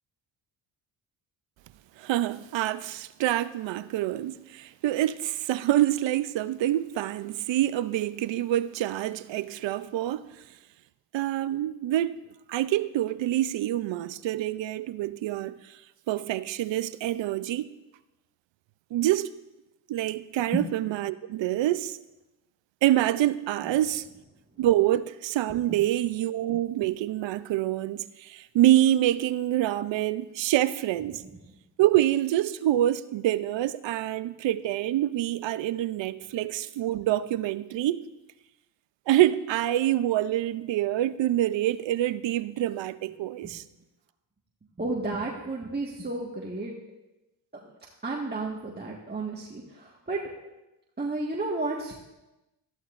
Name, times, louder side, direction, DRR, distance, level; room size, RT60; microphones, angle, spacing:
voice 1, 2.0-10.2 11.1-12.2 12.5-15.8 16.1-17.7 18.9-19.3 19.9-21.9 22.8-24.0 24.6-31.2 31.8-38.0 39.1-43.6, right 13 dB, 65° right, 0.6 m, -26 dB
voice 2, 44.8-46.7 48.0-50.2 51.0-52.0, right 2 dB, 20° right, 1.7 m, -32 dB
14.0 x 11.5 x 2.5 m
cardioid pair, 70°, 48 cm